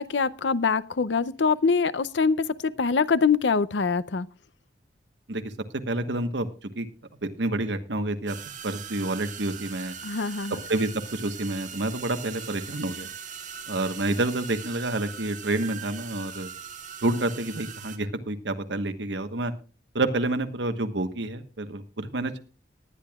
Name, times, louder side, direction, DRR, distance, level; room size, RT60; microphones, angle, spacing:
voice 1, 0.0-4.3 10.0-10.6, left 5 dB, 75° left, 0.6 m, -24 dB
voice 2, 5.9-6.9 7.2-8.4 8.6-10.0 10.7-13.1 13.7-16.5 17.0-19.5 19.9-22.4, right 2 dB, 75° right, 1.3 m, -28 dB
sound 1, 8.3-18.0, right 7 dB, 45° right, 1.6 m, -40 dB
19.5 x 10.5 x 2.4 m
head